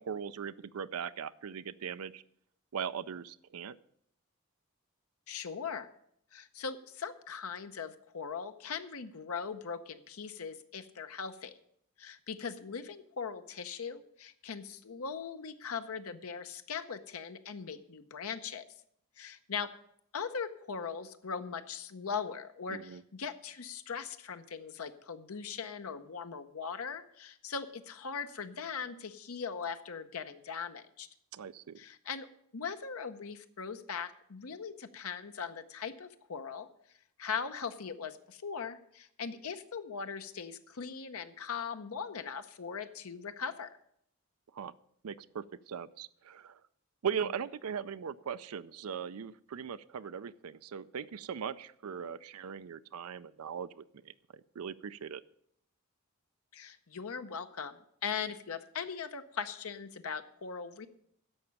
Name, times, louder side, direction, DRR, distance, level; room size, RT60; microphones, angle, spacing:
voice 1, 0.0-2.2 2.7-3.8 22.7-23.0 31.3-31.8 44.5-44.7 45.0-46.6 47.0-54.1 54.6-55.2, right 7 dB, 90° right, 14 dB, 0.5 m, -39 dB
voice 2, 5.3-5.9 6.3-11.5 12.0-18.6 19.2-19.7 20.1-31.1 31.8-32.3 32.5-36.7 37.2-43.7 56.5-60.9, left 6 dB, 75° left, 9 dB, 0.7 m, -40 dB
11.0 x 6.9 x 8.6 m, 0.70 s
head